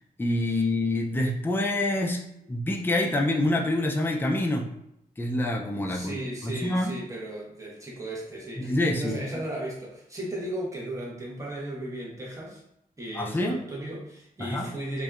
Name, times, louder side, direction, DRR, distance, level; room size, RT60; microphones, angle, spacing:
voice 1, 0.2-2.2 2.5-4.7 5.2-6.9 8.6-9.2 13.1-13.6 14.4-14.7, left 1 dB, 15° left, 0 dB, 0.4 m, -26 dB
voice 2, 5.9-12.6 13.0-15.0, right 1 dB, 20° right, -4 dB, 0.9 m, -36 dB
2.6 x 2.2 x 2.3 m, 0.79 s
wide cardioid pair, 75°, 16 cm